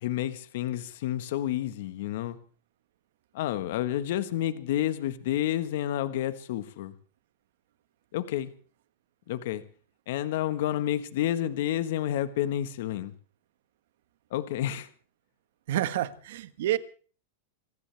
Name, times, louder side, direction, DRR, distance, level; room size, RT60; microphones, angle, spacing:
voice 1, 0.0-2.4 3.3-6.9 8.1-8.5 9.3-9.6 10.1-13.1 14.3-14.9, left 12 dB, 70° left, 1.4 m, -30 dB
voice 2, 15.7-16.8, right 13 dB, 70° right, 1.4 m, -28 dB
26.5 x 15.5 x 3.5 m
hypercardioid pair, 125°, 0 cm